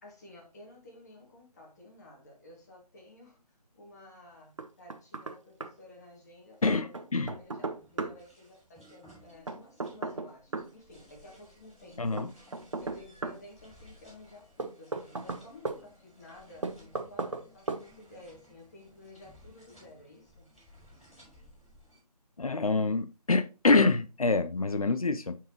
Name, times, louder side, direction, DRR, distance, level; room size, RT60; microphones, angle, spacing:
voice 1, 0.0-3.4 3.7-6.9 7.3-12.4 12.8-20.5, left 2 dB, 25° left, 1.9 m, -53 dB
Knock, 4.6-5.4 5.6-5.7 6.9-8.2 9.5-10.7 12.2-13.4 14.6-15.8 16.6-17.4 17.7-17.8, right 3 dB, 50° right, 0.8 m, -35 dB
voice 2, 6.6-7.4 12.0-12.3 22.4-25.4, left 3 dB, 60° left, 0.7 m, -26 dB
sound 1, 7.4-22.0, equal, ahead, 3.5 m, -59 dB
9.0 x 4.7 x 3.0 m
figure-of-eight pair, 155°, 21 cm